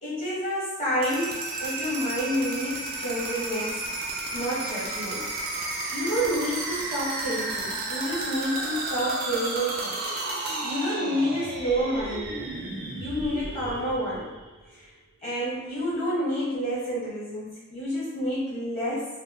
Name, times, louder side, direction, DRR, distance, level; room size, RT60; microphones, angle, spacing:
voice 1, 0.0-3.8 4.3-5.2 5.9-10.0 10.6-12.3 13.0-14.3 14.7-14.9 15.2-19.1, equal, 30° left, -9 dB, 0.9 m, -29 dB
sound 1, 0.9-14.7, right 2 dB, 45° right, 0.3 m, -33 dB
2.2 x 2.0 x 3.5 m, 1.2 s
head